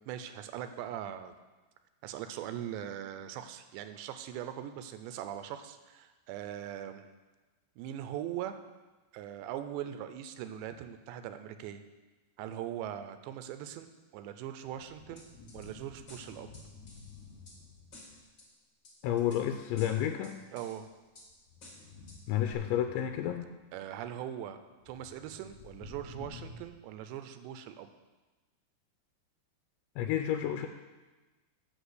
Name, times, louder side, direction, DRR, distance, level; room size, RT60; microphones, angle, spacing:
voice 1, 0.0-1.3 2.0-7.1 7.8-8.6 9.1-11.8 12.4-15.2 15.5-16.5 20.5-20.9 23.7-24.6 24.9-27.9, right 10 dB, 85° right, 9 dB, 2.8 m, -41 dB
sound 1, 14.6-18.3 19.3-19.6 20.8-23.5 24.8-26.6, left 3 dB, 70° left, 1.9 m, -51 dB
sound 2, 15.2-15.7 16.1-17.6 17.9-18.5 18.8-19.4 19.8-20.8 21.1-21.3 21.6-22.2 22.5-22.6, left 2 dB, 30° left, 2.3 m, -53 dB
voice 2, 19.0-20.4 22.3-23.5 30.0-30.7, left 10 dB, 90° left, 6 dB, 2.9 m, -30 dB
8.0 x 6.5 x 8.0 m, 1.2 s
omnidirectional pair, 5.1 m